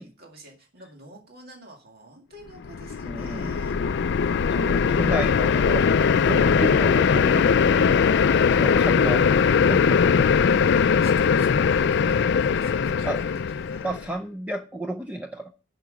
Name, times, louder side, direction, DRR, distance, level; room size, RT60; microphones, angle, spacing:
voice 1, 0.0-3.8 4.8-5.2 6.0-6.5 8.4-9.1 10.6-13.9, right 1 dB, 50° right, 1 dB, 2.2 m, -48 dB
sound 1, 2.6-14.0, left 6 dB, 60° left, 0.4 m, -20 dB
voice 2, 3.0-3.5 4.5-5.9 6.1-8.0 8.5-9.2 9.6-10.3 10.7-10.9 13.0-13.2 13.8-15.5, right 1 dB, 5° right, 4 dB, 0.6 m, -32 dB
10.5 x 5.9 x 5.2 m, 0.34 s
head